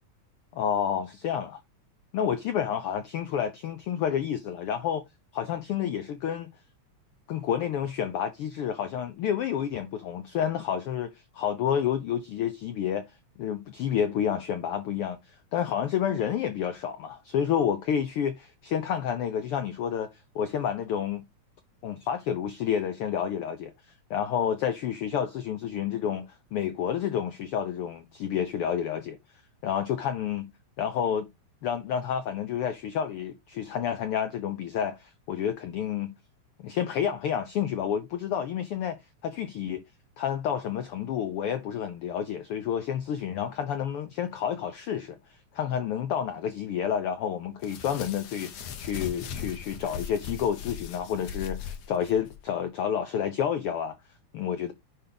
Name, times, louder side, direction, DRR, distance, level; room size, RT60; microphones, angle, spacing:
voice 1, 0.5-1.6 2.1-5.0 5.3-6.5 7.3-20.1 20.3-21.3 21.8-23.7 24.1-26.3 26.5-29.2 29.6-30.5 30.8-31.3 31.6-36.2 36.6-39.8 40.2-45.2 45.5-54.0 54.3-54.7, left 8 dB, 80° left, 1.2 m, -29 dB
sound 1, 47.6-52.4, left 7 dB, 65° left, 2.0 m, -39 dB
10.0 x 3.4 x 3.8 m
omnidirectional pair, 3.4 m